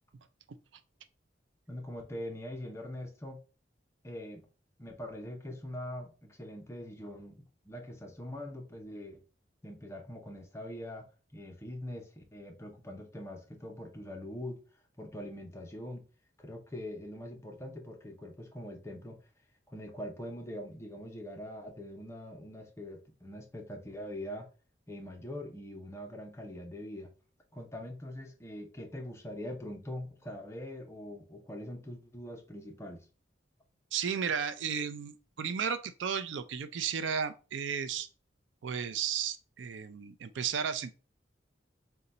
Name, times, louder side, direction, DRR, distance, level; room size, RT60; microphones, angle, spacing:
voice 1, 1.7-3.4 4.0-4.5 4.8-9.2 9.6-11.1 11.3-14.6 15.0-16.0 16.4-19.2 19.7-24.5 24.9-27.1 27.5-33.1, left 1 dB, 15° left, 0.7 m, -43 dB
voice 2, 33.9-38.1 38.6-40.9, right 7 dB, 75° right, 0.4 m, -34 dB
3.8 x 2.3 x 4.1 m
head